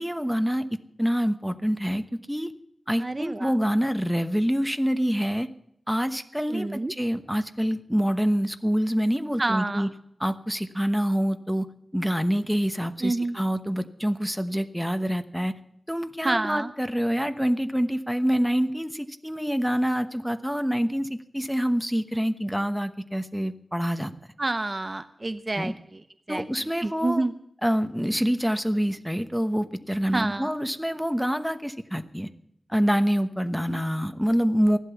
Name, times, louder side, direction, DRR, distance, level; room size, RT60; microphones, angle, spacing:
voice 1, 0.0-2.5 2.9-5.5 5.9-9.9 10.2-11.7 11.9-15.5 15.9-24.1 25.6-25.7 26.3-27.2 27.6-32.3 32.7-34.8, equal, ahead, 9 dB, 1.0 m, -26 dB
voice 2, 3.0-3.5 6.5-6.9 9.4-9.9 13.0-13.4 16.2-16.7 24.4-26.0 26.3-26.4 26.8-27.3 30.1-30.5, right 2 dB, 30° right, 11 dB, 0.6 m, -28 dB
15.5 x 12.0 x 7.1 m, 0.72 s
wide cardioid pair, 90°, 0 cm